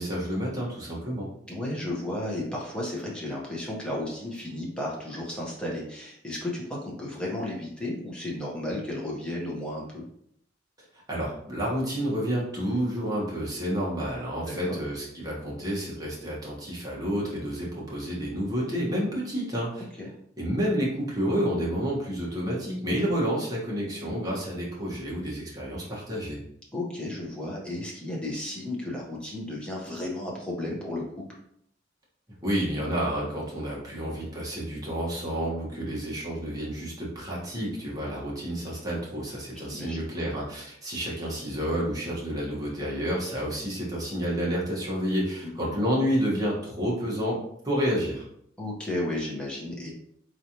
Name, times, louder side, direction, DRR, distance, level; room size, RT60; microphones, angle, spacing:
voice 1, 0.0-1.3 11.1-19.8 20.4-26.4 32.4-47.4 47.6-48.3, equal, 20° right, -5 dB, 1.3 m, -29 dB
voice 2, 1.5-10.0 14.4-14.8 20.0-20.1 26.7-31.2 39.6-40.0 45.4-45.7 48.6-49.9, left 1 dB, 5° left, -4 dB, 1.0 m, -33 dB
4.0 x 3.2 x 2.9 m, 0.70 s
head